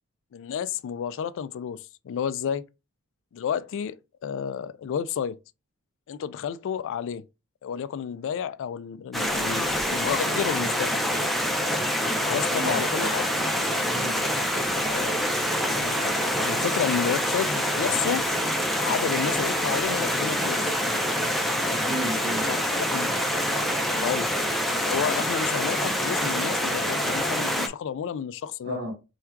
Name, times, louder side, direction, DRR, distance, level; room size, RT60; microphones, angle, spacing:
voice 1, 0.3-2.7 3.3-4.0 4.2-5.4 6.1-7.3 7.6-11.0 12.3-13.3 14.5-14.6 14.9-15.2 15.7-18.2 18.8-20.7 22.5-23.2 23.9-24.3 24.9-28.8, left 8 dB, 60° left, 0.3 m, -31 dB
Stream, 9.1-27.7, equal, ahead, 0.5 m, -26 dB
voice 2, 12.5-12.8 13.8-14.2 21.7-22.5 28.6-28.9, right 1 dB, 70° right, 1.7 m, -33 dB
3.5 x 2.4 x 4.4 m
head